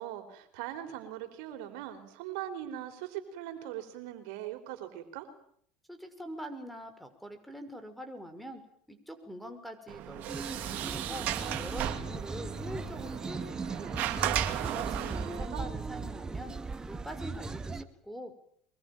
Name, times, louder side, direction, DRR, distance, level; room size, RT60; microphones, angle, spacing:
voice 1, 0.0-5.3 14.9-15.7, right 12 dB, 70° right, 6 dB, 4.2 m, -41 dB
voice 2, 5.9-8.6 8.9-11.3 11.6-14.1 14.6-16.5 16.9-18.3, equal, ahead, 8 dB, 6.1 m, -44 dB
Sliding door, 9.9-15.5, right 12 dB, 55° right, 2.7 m, -35 dB
sound 1, 10.3-17.8, right 3 dB, 20° right, 1.8 m, -38 dB
24.5 x 22.5 x 9.0 m, 0.65 s
hypercardioid pair, 85°, 3 cm